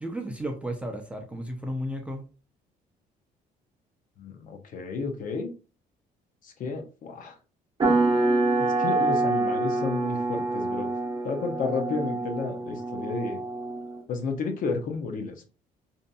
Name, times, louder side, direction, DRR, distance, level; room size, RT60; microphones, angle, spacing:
voice 1, 0.0-2.2, equal, 5° right, 3 dB, 0.5 m, -33 dB
voice 2, 4.2-5.5 6.4-7.4 8.8-10.9 11.2-13.4 14.1-15.4, left 4 dB, 55° left, 5 dB, 0.6 m, -32 dB
sound 1, 7.8-14.0, right 2 dB, 30° right, 0.9 m, -26 dB
2.6 x 2.5 x 2.2 m, 0.34 s
cardioid pair, 110°, 17 cm